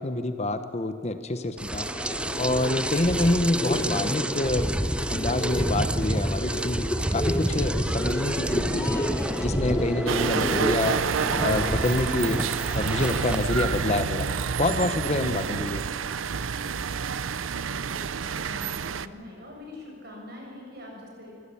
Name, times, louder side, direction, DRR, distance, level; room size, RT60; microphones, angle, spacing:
voice 1, 0.0-1.9 2.4-4.7 5.1-9.1 9.4-11.0 11.4-14.3 14.6-15.8, left 2 dB, 35° left, 10 dB, 1.0 m, -27 dB
Rain, 1.6-13.4, right 1 dB, 5° right, 0.4 m, -29 dB
sound 1, 1.7-11.7, left 1 dB, 20° left, 1.4 m, -32 dB
sound 2, 10.1-19.1, right 6 dB, 90° right, 0.6 m, -28 dB
voice 2, 16.6-21.3, left 1 dB, 55° right, -1 dB, 6.9 m, -45 dB
25.0 x 15.5 x 8.6 m, 2.7 s
head